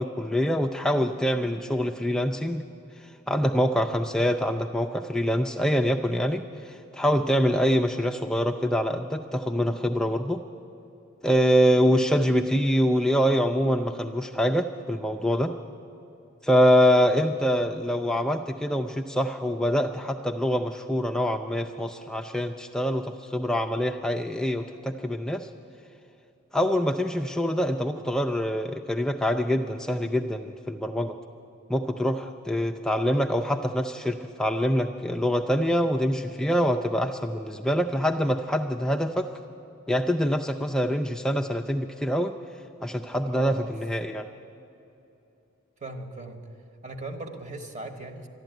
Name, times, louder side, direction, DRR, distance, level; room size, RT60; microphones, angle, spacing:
voice 1, 0.0-2.6 3.0-10.4 11.2-15.5 16.4-25.5 26.5-31.2 31.7-39.3 39.9-42.4 42.8-44.2, equal, 5° left, 4 dB, 0.3 m, -25 dB
voice 2, 43.2-43.7 45.8-46.4 46.8-48.3, right 2 dB, 35° right, 6 dB, 1.1 m, -38 dB
12.0 x 12.0 x 9.1 m, 2.8 s
head